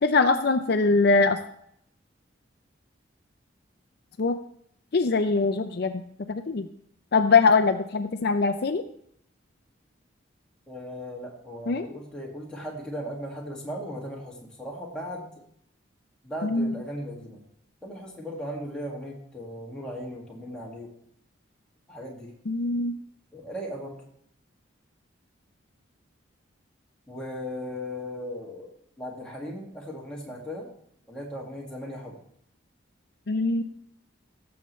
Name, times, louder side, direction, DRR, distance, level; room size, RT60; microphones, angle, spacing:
voice 1, 0.0-1.4 4.2-4.4 4.9-5.9 6.3-6.7 7.1-8.8 11.7-11.9 16.4-16.7 22.5-22.9 33.3-33.6, left 4 dB, 55° left, 8 dB, 0.5 m, -22 dB
voice 2, 10.7-15.3 16.2-17.4 17.8-20.9 21.9-22.3 23.3-24.0 27.1-28.7 29.0-30.7 31.1-32.2, equal, 5° left, -3 dB, 2.1 m, -37 dB
16.5 x 6.9 x 3.2 m, 0.69 s
head